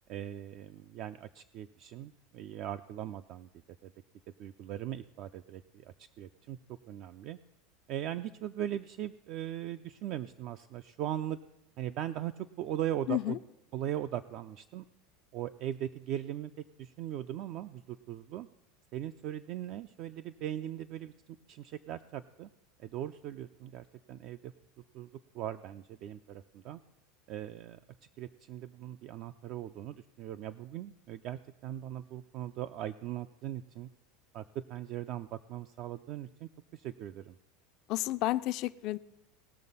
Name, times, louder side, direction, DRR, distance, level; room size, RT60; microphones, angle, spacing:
voice 1, 0.1-3.5 3.8-3.9 4.4-6.6 6.9-7.4 7.9-11.4 11.8-13.4 13.7-14.8 15.3-16.5 16.8-18.5 18.9-22.5 22.8-24.5 24.9-25.1 25.3-26.8 27.3-27.8 28.2-33.9 34.3-37.4, right 11 dB, 45° right, 10 dB, 0.3 m, -39 dB
voice 2, 13.1-13.4 37.9-39.0, left 17 dB, 45° left, 14 dB, 0.4 m, -31 dB
19.0 x 6.6 x 5.4 m, 0.92 s
supercardioid pair, 160°, 0 cm